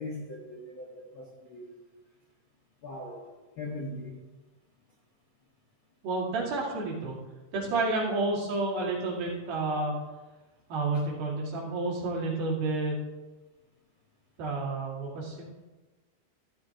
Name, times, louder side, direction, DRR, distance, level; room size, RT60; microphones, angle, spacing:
voice 1, 0.0-1.7 2.8-3.3 3.6-4.2, left 2 dB, 75° left, -2 dB, 1.1 m, -40 dB
voice 2, 6.0-7.2 7.5-9.9 10.7-13.0 14.4-15.4, right 3 dB, 65° right, -4 dB, 3.9 m, -30 dB
14.0 x 12.0 x 2.9 m, 1.2 s
omnidirectional pair, 4.8 m